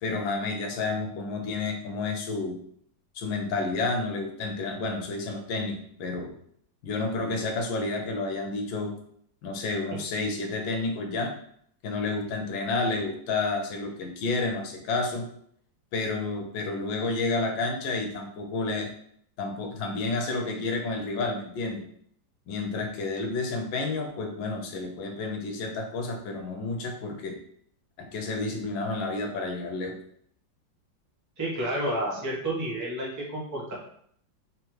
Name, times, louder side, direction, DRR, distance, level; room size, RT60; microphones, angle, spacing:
voice 1, 0.0-2.6 3.1-6.3 6.8-8.9 9.4-11.3 11.8-15.2 15.9-18.9 19.4-21.8 22.5-27.3 28.0-30.0, left 3 dB, 85° left, 3 dB, 1.5 m, -30 dB
voice 2, 31.4-33.7, right 1 dB, 15° right, -4 dB, 0.6 m, -30 dB
3.7 x 3.3 x 3.1 m, 0.65 s
omnidirectional pair, 2.0 m